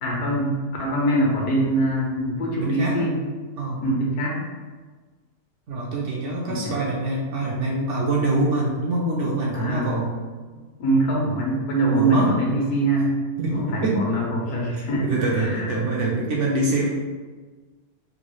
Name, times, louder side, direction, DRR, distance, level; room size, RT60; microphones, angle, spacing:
voice 1, 0.0-3.2 3.8-4.4 6.5-6.8 9.5-9.9 10.8-13.1 13.4-15.8, right 1 dB, 85° left, -2 dB, 1.3 m, -23 dB
voice 2, 2.6-3.1 3.6-3.9 5.7-10.1 11.9-12.3 13.4-14.0 14.7-16.9, right 2 dB, 65° right, -3 dB, 0.8 m, -25 dB
3.8 x 2.3 x 3.0 m, 1.4 s
omnidirectional pair, 1.6 m